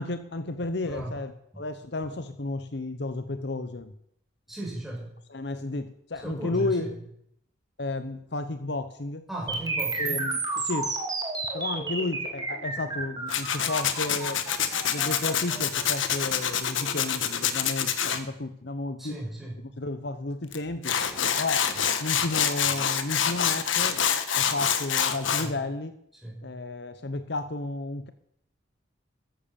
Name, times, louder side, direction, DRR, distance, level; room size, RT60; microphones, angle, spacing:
voice 1, 0.0-3.9 5.3-6.9 7.8-9.3 10.0-11.0 11.5-14.5 14.9-19.2 19.8-21.0 21.4-21.7 22.0-24.0 24.4-25.9 26.4-28.1, left 2 dB, 60° left, 10 dB, 0.9 m, -32 dB
voice 2, 0.8-1.2 4.5-5.1 6.2-7.0 9.3-10.2 19.0-19.7 25.4-25.6 26.2-26.4, right 1 dB, ahead, -3 dB, 5.4 m, -36 dB
sound 1, 9.5-17.4, right 3 dB, 20° right, 2.6 m, -32 dB
Tools, 13.3-18.2 20.5-20.6 20.8-25.5, left 8 dB, 85° left, 1.4 m, -26 dB
14.0 x 11.0 x 7.1 m, 0.74 s
head